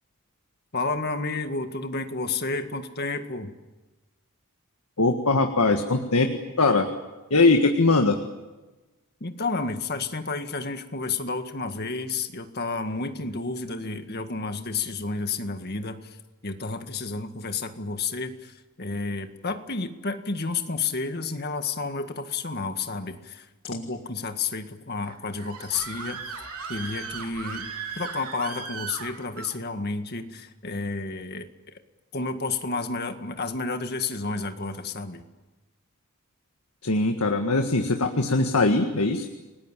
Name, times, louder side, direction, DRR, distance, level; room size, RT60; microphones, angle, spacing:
voice 1, 0.7-3.5 9.2-16.2 16.4-26.2 26.7-27.7 28.0-31.8 32.1-35.2, left 3 dB, 45° left, 7 dB, 1.9 m, -31 dB
voice 2, 5.0-6.3 6.6-6.9 7.3-8.2 36.8-39.3, left 3 dB, 80° left, 5 dB, 1.7 m, -21 dB
Screaming, 25.0-29.6, right 5 dB, 85° right, 3.9 m, -37 dB
30.0 x 20.0 x 7.6 m, 1.2 s
head